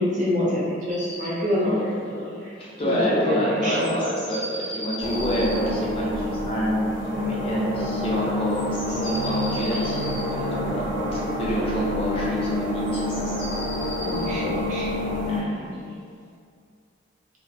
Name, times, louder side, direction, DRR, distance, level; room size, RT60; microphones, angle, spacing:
voice 1, 0.0-2.6 2.8-4.0 14.0-15.0, left 1 dB, 40° right, -7 dB, 0.5 m, -26 dB
sound 1, 0.9-1.3 1.6-1.7 1.9-2.0 2.2-3.4 3.8-5.6 8.2-10.2 12.9-15.9, equal, 5° left, 0.7 m, -37 dB
voice 2, 1.6-2.0 2.6-8.6 8.9-13.1 15.3-15.7, equal, 30° left, -6 dB, 0.3 m, -28 dB
sound 2, 5.0-15.4, left 1 dB, 60° left, 0.6 m, -28 dB
2.4 x 2.0 x 2.6 m, 2.3 s
head